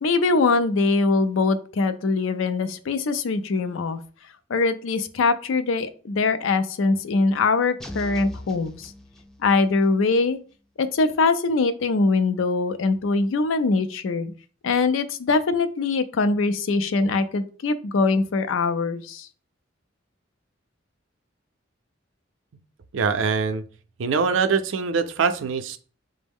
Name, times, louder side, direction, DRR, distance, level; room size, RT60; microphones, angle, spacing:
voice 1, 0.0-4.0 4.5-8.9 9.4-10.4 10.8-14.3 14.6-19.3, left 3 dB, 85° left, 10 dB, 0.4 m, -22 dB
sound 1, 7.8-9.7, left 1 dB, 5° left, 0.3 m, -38 dB
voice 2, 22.9-23.6 24.0-25.8, right 5 dB, 75° right, 9 dB, 0.4 m, -23 dB
5.2 x 2.0 x 3.5 m, 0.41 s
head